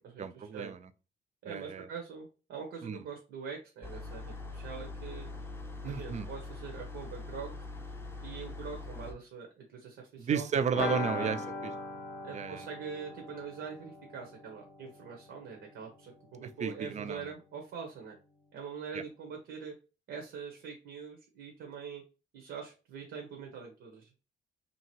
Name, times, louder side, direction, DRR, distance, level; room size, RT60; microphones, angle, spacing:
voice 1, 0.2-0.9 1.4-1.9 2.8-3.0 5.8-6.3 10.2-11.7 12.3-12.7 16.6-17.3 18.9-19.0, right 6 dB, 35° right, 0.4 m, -33 dB
voice 2, 1.4-5.3 5.8-7.5 8.2-10.5 11.1-11.3 12.2-18.2 18.5-19.7 20.1-22.0 22.3-24.2, right 6 dB, 80° right, 0.9 m, -43 dB
sound 1, 3.8-9.1, left 3 dB, 10° left, 0.5 m, -43 dB
sound 2, 10.7-16.4 16.6-16.7 17.0-17.1, left 3 dB, 55° left, 0.5 m, -40 dB
2.8 x 2.5 x 2.9 m
cardioid pair, 90°, 20 cm